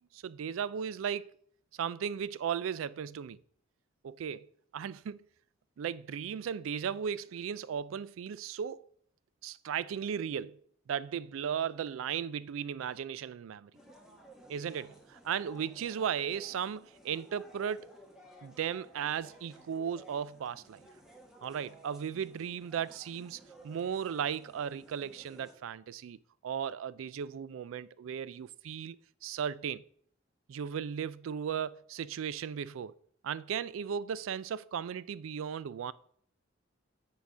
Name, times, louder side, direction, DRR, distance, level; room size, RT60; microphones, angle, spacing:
voice 1, 0.1-1.3 1.7-3.4 4.0-4.5 4.7-5.2 5.8-8.9 9.4-10.6 10.9-13.7 14.5-17.9 18.4-20.8 21.4-26.2 26.4-29.8 30.5-32.9 33.2-35.9, right 8 dB, 90° right, 0.3 m, -36 dB
sound 1, 13.7-25.5, right 1 dB, 5° right, 1.2 m, -56 dB
8.2 x 4.0 x 6.2 m
head